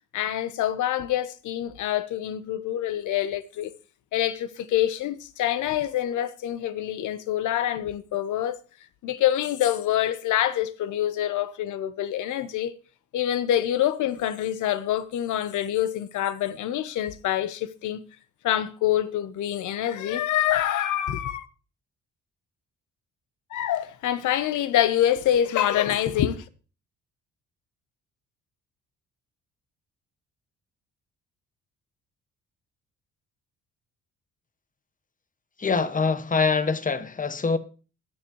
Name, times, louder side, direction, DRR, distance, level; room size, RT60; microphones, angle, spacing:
voice 1, 0.1-3.7 4.1-8.6 9.0-12.7 13.1-18.0 18.4-21.5 23.5-26.4, left 11 dB, 80° left, 1.0 m, -26 dB
voice 2, 35.6-37.6, left 4 dB, 25° left, 1.1 m, -24 dB
21.0 x 7.2 x 3.1 m
cardioid pair, 90°, 30 cm